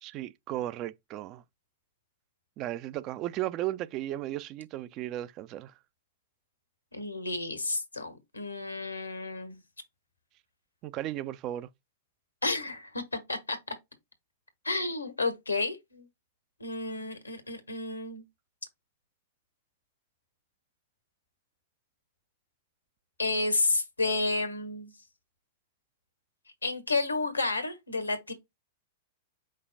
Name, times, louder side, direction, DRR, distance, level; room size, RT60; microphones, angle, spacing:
voice 1, 0.0-1.4 2.6-5.7 10.8-11.7, right 14 dB, 40° right, 0.4 m, -35 dB
voice 2, 6.9-9.6 12.4-13.0 13.3-13.7 14.6-16.1 16.6-18.2 23.2-24.9 26.6-28.3, left 3 dB, 90° left, 1.5 m, -31 dB
5.3 x 2.2 x 3.9 m
figure-of-eight pair, 100°, 0 cm